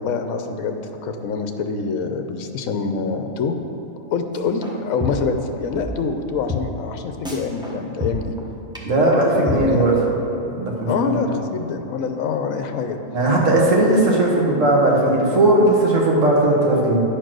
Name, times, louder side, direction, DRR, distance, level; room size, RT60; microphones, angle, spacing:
voice 1, 0.0-3.6 4.1-8.3 9.3-9.9 10.9-13.0, left 5 dB, 75° left, 6 dB, 1.1 m, -25 dB
sound 1, 4.3-4.7 5.0-5.4 5.7-5.8 6.1-6.2 6.5-6.6 6.9-7.0 7.2-7.7 8.0-8.4 8.7-8.8 9.1-9.2 9.5-9.6, left 4 dB, 5° right, 0.8 m, -27 dB
voice 2, 8.8-9.9 10.5-11.2 13.1-17.0, right 1 dB, 60° right, -3 dB, 1.7 m, -17 dB
9.9 x 4.5 x 6.2 m, 2.9 s
omnidirectional pair, 1.5 m